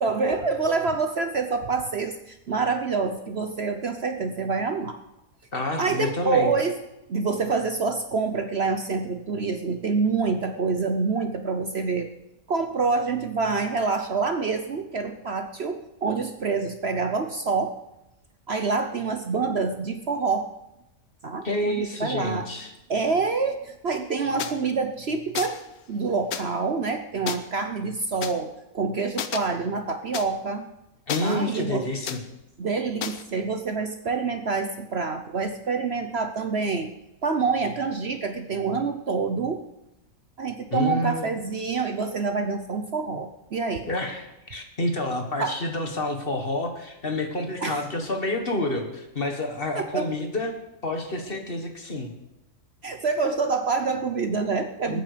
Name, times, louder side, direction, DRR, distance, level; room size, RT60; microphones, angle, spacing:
voice 1, 0.0-5.0 5.8-6.8 7.1-12.1 12.5-17.8 18.5-20.5 21.2-22.4 22.9-25.6 25.9-30.7 31.2-31.9 32.6-36.9 37.2-39.6 40.4-43.9 45.4-45.6 47.6-47.8 49.7-50.1 52.8-55.0, right 4 dB, 50° right, 7 dB, 1.0 m, -26 dB
voice 2, 5.5-6.5 21.4-22.7 31.1-32.2 40.7-41.3 43.9-50.6 50.8-52.1 54.9-55.0, left 1 dB, 40° left, 4 dB, 1.8 m, -28 dB
sound 1, 24.4-24.5 25.3-25.7 26.3-26.4 27.3-27.4 28.2-28.3 29.2-29.4 30.1-30.2 31.1-31.6 32.1-32.2 33.0-33.2, left 8 dB, 80° left, 1.4 m, -31 dB
20.5 x 9.1 x 5.1 m, 0.91 s
omnidirectional pair, 1.6 m